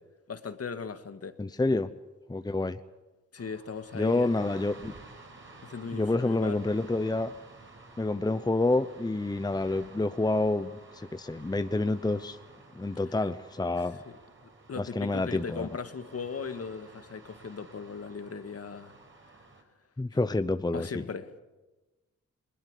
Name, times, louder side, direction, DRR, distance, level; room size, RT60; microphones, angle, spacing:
voice 1, 0.3-1.4 3.3-4.3 5.6-6.6 14.7-18.9 20.7-21.3, left 5 dB, 50° left, 10 dB, 1.8 m, -38 dB
voice 2, 1.4-1.9 2.3-2.8 3.9-4.9 5.9-7.3 8.0-12.4 12.7-14.0 14.8-15.8 20.0-21.0, left 2 dB, 15° left, 12 dB, 0.8 m, -28 dB
sound 1, 3.4-19.6, right 3 dB, 40° right, 5.5 m, -52 dB
21.0 x 21.0 x 8.3 m, 1.1 s
cardioid pair, 75°, 30 cm